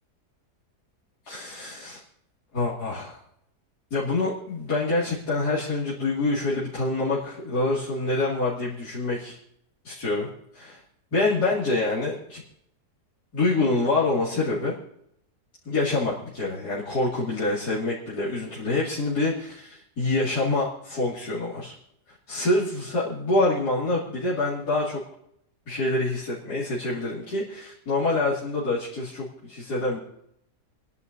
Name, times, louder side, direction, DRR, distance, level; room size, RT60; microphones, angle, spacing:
voice 1, 1.2-2.0 2.5-3.2 3.9-9.4 9.8-10.3 10.5-10.8 11.1-12.4 13.3-14.7 15.6-21.7 22.3-25.0 25.7-30.0, left 2 dB, 75° left, -9 dB, 3.1 m, -26 dB
29.0 x 11.0 x 2.7 m, 0.76 s
omnidirectional pair, 1.7 m